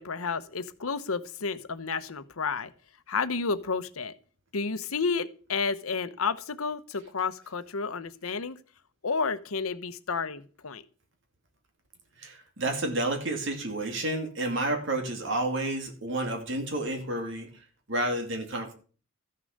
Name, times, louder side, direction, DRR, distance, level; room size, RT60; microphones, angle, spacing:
voice 1, 0.0-2.7 3.1-4.2 4.5-8.6 9.0-10.8, left 4 dB, 85° left, 0.9 m, -31 dB
voice 2, 12.2-18.7, right 1 dB, 60° right, 2.5 m, -30 dB
13.5 x 6.7 x 6.5 m
head